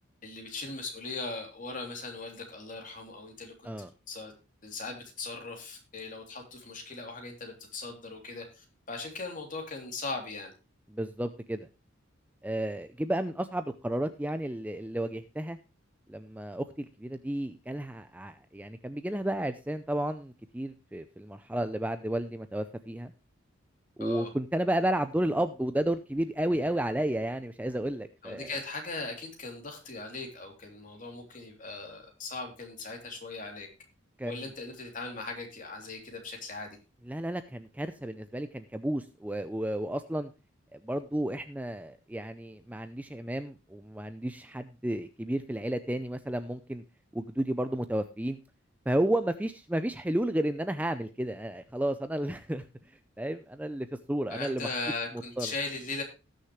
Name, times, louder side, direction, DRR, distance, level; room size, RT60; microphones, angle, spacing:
voice 1, 0.2-4.3 4.6-10.5 24.0-24.3 28.2-33.7 34.2-36.8 54.3-56.0, left 3 dB, 40° left, 2 dB, 3.2 m, -39 dB
voice 2, 10.9-11.7 12.4-15.6 16.1-23.1 24.0-28.6 34.2-34.4 37.1-40.3 40.7-46.8 47.1-48.4 48.9-52.6 53.2-54.7 55.4-55.5, right 1 dB, 5° right, 10 dB, 0.5 m, -32 dB
19.0 x 6.5 x 3.1 m, 0.30 s
head